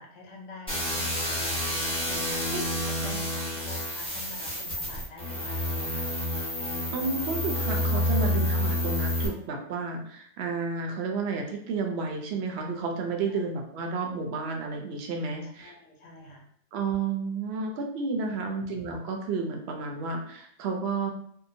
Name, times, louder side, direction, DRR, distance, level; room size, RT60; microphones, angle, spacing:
voice 1, 0.0-1.8 2.1-6.1 8.1-8.2 13.2-13.4 15.4-16.5 18.3-18.6, left 2 dB, 85° left, 1 dB, 1.0 m, -46 dB
sound 1, 0.7-9.3, left 1 dB, 5° left, 0.5 m, -29 dB
voice 2, 6.9-15.7 16.7-21.1, right 4 dB, 65° right, 2 dB, 0.7 m, -31 dB
2.7 x 2.1 x 2.6 m, 0.64 s
omnidirectional pair, 1.3 m